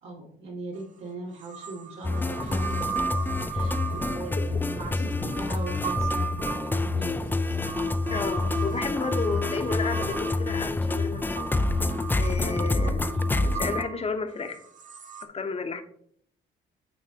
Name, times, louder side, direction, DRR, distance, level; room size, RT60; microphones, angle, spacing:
voice 1, 0.0-2.9 3.5-7.4 12.8-13.2, right 2 dB, 80° right, -3 dB, 2.1 m, -40 dB
sound 1, 0.7-0.8 1.4-15.3, right 6 dB, 40° right, 0.6 m, -37 dB
sound 2, 2.0-13.8, left 2 dB, 10° left, 0.3 m, -27 dB
voice 2, 5.0-5.5 8.1-11.2 12.2-13.0 13.4-14.6 15.3-15.8, left 4 dB, 30° left, 7 dB, 0.8 m, -32 dB
8.6 x 3.9 x 2.8 m, 0.64 s
cardioid pair, 90°, 20 cm